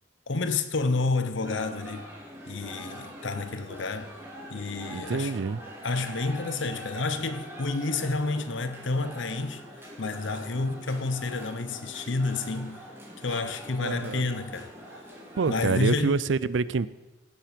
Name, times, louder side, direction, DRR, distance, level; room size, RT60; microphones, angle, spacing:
voice 1, 0.3-2.1 2.5-4.1 4.5-5.3 5.8-9.6 10.0-12.8 13.2-14.7 15.5-16.2, left 3 dB, 75° left, 0.9 m, -29 dB
sound 1, 1.4-15.8, equal, 10° right, 2.3 m, -43 dB
voice 2, 4.9-5.6 13.3-13.4 13.8-14.3 15.3-16.9, right 4 dB, 75° right, 0.5 m, -27 dB
17.5 x 7.5 x 5.2 m
head